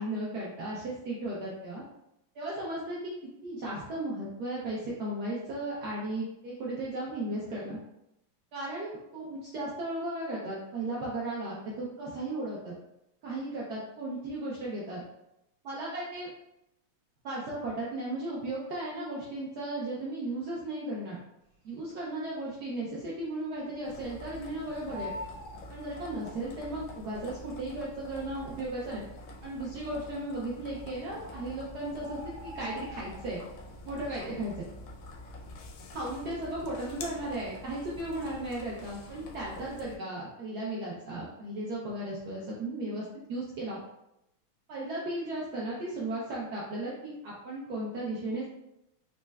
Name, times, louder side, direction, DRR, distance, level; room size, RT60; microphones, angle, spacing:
voice 1, 0.0-1.8 2.3-3.1 3.4-7.8 8.5-12.7 13.2-15.0 15.6-16.3 17.2-21.2 21.6-25.1 25.7-29.0 29.4-33.4 33.8-34.6 35.9-43.8 44.7-48.5, right 1 dB, 80° right, -5 dB, 0.8 m, -35 dB
Bird, 21.9-22.5 22.9-23.0 23.2-24.4 24.7-26.5 27.4-27.5 28.1-28.2 28.4-28.5 29.1-29.6 30.6-30.7 31.0-31.1 31.3-33.6 34.0-34.3 34.6-36.0 36.3-36.6, left 1 dB, 50° right, 1.4 m, -44 dB
sound 1, 23.8-40.0, left 1 dB, 80° left, 1.4 m, -46 dB
4.2 x 2.1 x 2.2 m, 0.85 s
omnidirectional pair, 2.3 m